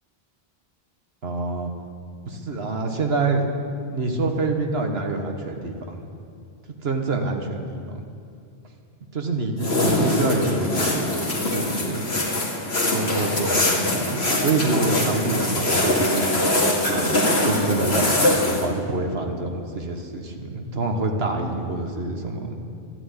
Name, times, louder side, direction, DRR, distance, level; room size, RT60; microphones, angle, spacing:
voice 1, 1.2-1.7 2.3-3.5 3.9-6.0 6.8-8.0 9.1-10.8 11.3-12.0 12.9-16.3 16.9-22.5, right 3 dB, 80° right, 4 dB, 1.7 m, -26 dB
sound 1, 9.6-18.6, left 1 dB, 80° left, 2.4 m, -22 dB
13.0 x 11.0 x 9.8 m, 2.4 s
omnidirectional pair, 1.0 m